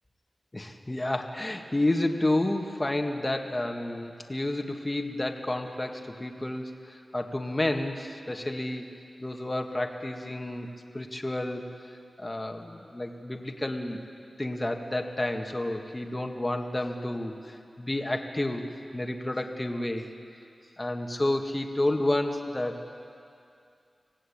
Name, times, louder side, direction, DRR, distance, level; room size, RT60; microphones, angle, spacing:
voice 1, 0.5-8.9 9.2-10.7 10.9-11.6 12.2-14.0 14.4-18.6 18.9-20.1 20.8-22.9, left 1 dB, 25° left, 3 dB, 2.0 m, -30 dB
26.0 x 17.0 x 8.8 m, 2.5 s
wide cardioid pair, 60°, 0 cm